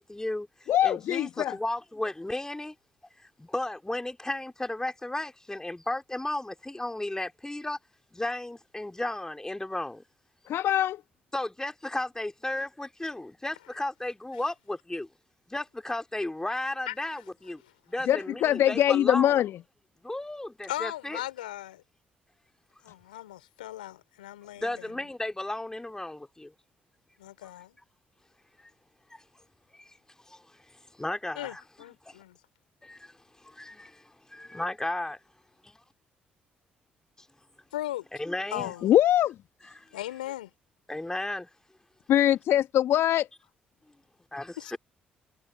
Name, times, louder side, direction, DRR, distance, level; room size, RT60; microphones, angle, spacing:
voice 1, 0.0-2.7 3.2-7.8 8.1-10.0 11.3-15.1 15.5-17.6 17.9-19.4 20.0-21.2 24.6-26.5 28.6-28.7 29.1-29.2 29.7-29.9 30.2-31.6 32.0-32.2 32.8-35.2 38.2-38.7 39.8-39.9 40.9-41.5 44.3-44.8, left 1 dB, 15° left, 2.4 m, -34 dB
voice 2, 0.7-1.6 10.5-11.0 18.1-19.5 38.8-39.3 42.1-43.3, left 12 dB, 60° left, 1.3 m, -23 dB
voice 3, 20.7-21.8 22.8-24.9 27.2-27.8 31.4-32.4 37.7-38.1 38.5-38.9 39.9-40.5 44.6-44.8, left 14 dB, 85° left, 4.6 m, -37 dB
figure-of-eight pair, 45°, 5 cm